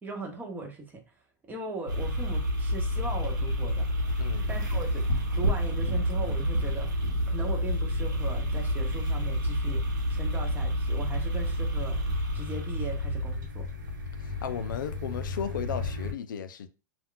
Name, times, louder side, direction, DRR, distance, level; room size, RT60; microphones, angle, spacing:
voice 1, 0.0-1.0 1.5-3.9 4.5-5.1 5.4-9.8 10.1-12.0 12.3-13.7, right 2 dB, 15° right, 0.8 m, -39 dB
sound 1, 1.9-16.1, equal, 75° right, 0.9 m, -29 dB
voice 2, 4.2-4.5 14.2-16.7, left 7 dB, 85° left, 0.4 m, -35 dB
2.4 x 2.2 x 3.7 m
hypercardioid pair, 120°, 10 cm